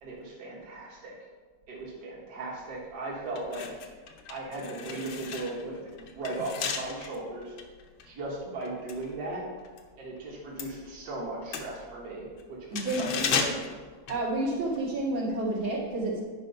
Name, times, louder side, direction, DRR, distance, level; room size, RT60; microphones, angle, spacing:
voice 1, 0.0-1.1 1.7-3.7 4.3-7.5 8.1-9.5 10.0-13.6, right 2 dB, 55° right, -4 dB, 2.0 m, -37 dB
sound 1, 2.7-2.8 3.3-9.9 10.2-14.8 15.1-15.3, left 6 dB, 80° left, 1.6 m, -36 dB
voice 2, 12.7-13.4 14.1-16.2, right 2 dB, 85° right, -5 dB, 2.8 m, -30 dB
9.8 x 4.8 x 5.3 m, 1.5 s
omnidirectional pair, 2.1 m